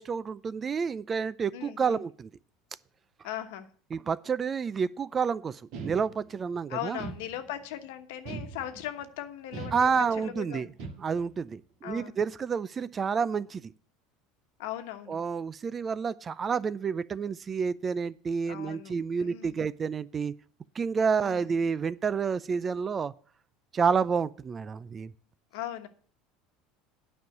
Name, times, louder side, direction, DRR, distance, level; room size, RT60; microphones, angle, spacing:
voice 1, 0.0-2.3 3.9-7.0 9.7-10.7 11.0-13.7 15.1-20.3 20.8-23.1 23.7-25.1, right 6 dB, 30° right, 0.4 m, -29 dB
voice 2, 1.5-2.0 3.2-3.7 6.7-10.7 11.8-12.2 14.6-15.2 18.5-18.9 19.2-19.6 21.2-21.6 25.5-25.9, left 12 dB, 80° left, 1.2 m, -39 dB
sound 1, 5.7-6.5 7.0-7.7 8.3-9.0 9.5-10.3 10.8-11.4, right 4 dB, 65° right, 1.6 m, -41 dB
9.4 x 5.5 x 7.7 m
supercardioid pair, 105°, 0 cm